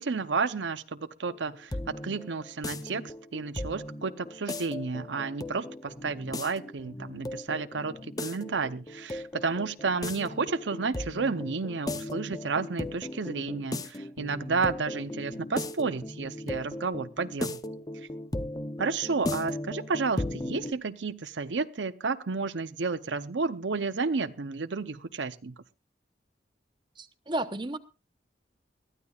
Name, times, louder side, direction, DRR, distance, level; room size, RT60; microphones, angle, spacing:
voice 1, 0.0-17.6 18.8-25.5, right 4 dB, 90° right, 0.7 m, -31 dB
sound 1, 1.3-20.7, left 1 dB, 20° left, 0.7 m, -37 dB
voice 2, 27.0-27.8, right 1 dB, 25° right, 0.9 m, -32 dB
22.0 x 14.0 x 2.4 m
head